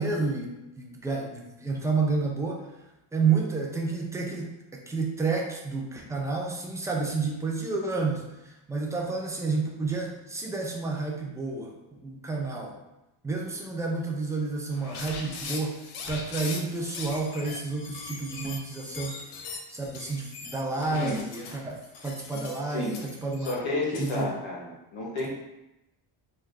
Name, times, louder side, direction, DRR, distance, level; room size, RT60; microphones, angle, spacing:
voice 1, 0.0-2.6 3.1-12.8 13.2-19.2 19.7-23.6 24.0-24.3, right 4 dB, 5° right, 0 dB, 0.4 m, -30 dB
sound 1, 14.7-24.2, left 4 dB, 90° left, 0.7 m, -41 dB
voice 2, 22.6-23.0 23.5-25.3, left 2 dB, 65° left, -4 dB, 1.0 m, -31 dB
3.6 x 2.2 x 3.2 m, 0.94 s
cardioid pair, 105°, 50 cm